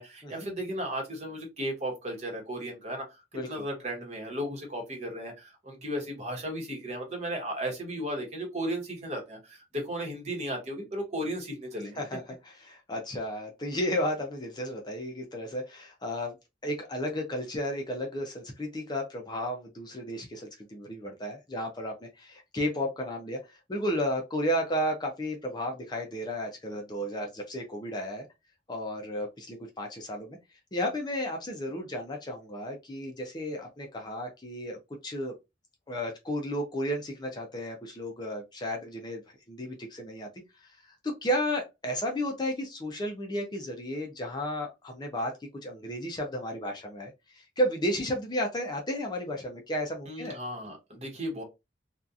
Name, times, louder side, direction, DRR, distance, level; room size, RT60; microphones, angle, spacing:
voice 1, 0.0-12.0 50.1-51.4, equal, 40° right, 1.1 m, -35 dB
voice 2, 3.3-3.6 12.0-16.4 16.6-28.2 28.7-30.4 30.7-35.3 35.9-39.2 39.5-40.3 40.6-40.8 41.0-45.3 45.6-50.4, equal, 25° left, 0.5 m, -33 dB
2.7 x 2.3 x 2.4 m
head